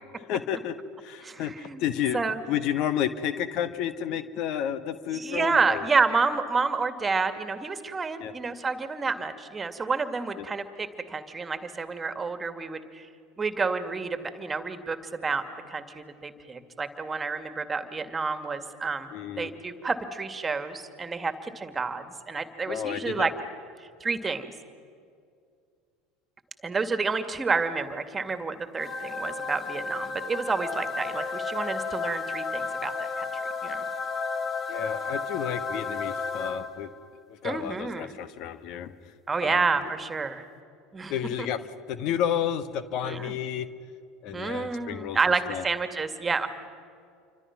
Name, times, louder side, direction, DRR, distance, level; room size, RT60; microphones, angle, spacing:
voice 1, 0.3-0.8 1.0-2.2 2.5-5.8 8.2-8.3 10.4-10.5 19.1-19.5 22.7-23.3 34.7-36.9 37.4-38.9 39.4-39.6 41.1-41.6 41.9-43.7 44.2-45.2 45.5-45.6, left 9 dB, 55° left, 13 dB, 1.3 m, -31 dB
voice 2, 1.2-1.8 2.1-2.4 5.1-13.1 13.4-15.4 15.7-19.1 19.4-23.3 24.0-24.5 26.6-33.3 33.6-33.8 37.4-38.2 39.3-40.4 40.9-41.1 43.0-43.3 44.3-46.5, right 4 dB, 20° right, 9 dB, 2.2 m, -29 dB
sound 1, 28.8-37.0, left 4 dB, 30° left, 2.5 m, -33 dB
28.5 x 25.0 x 6.0 m, 2.3 s
hypercardioid pair, 75°, 0 cm